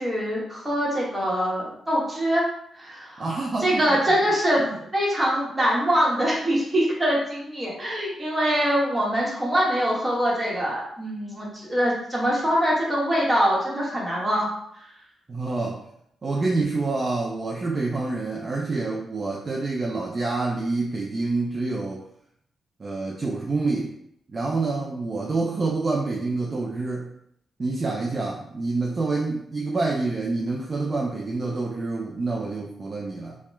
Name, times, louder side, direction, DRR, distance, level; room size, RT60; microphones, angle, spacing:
voice 1, 0.0-2.4 2.7-3.3 3.6-4.6 4.9-14.5, equal, 15° right, -4 dB, 1.1 m, -23 dB
voice 2, 3.2-4.1 4.6-4.8 15.3-15.8 16.2-22.0 22.8-23.9 24.3-27.1 27.6-33.4, right 3 dB, 40° right, -1 dB, 0.4 m, -27 dB
2.8 x 2.1 x 3.3 m, 0.72 s
cardioid pair, 75°, 0 cm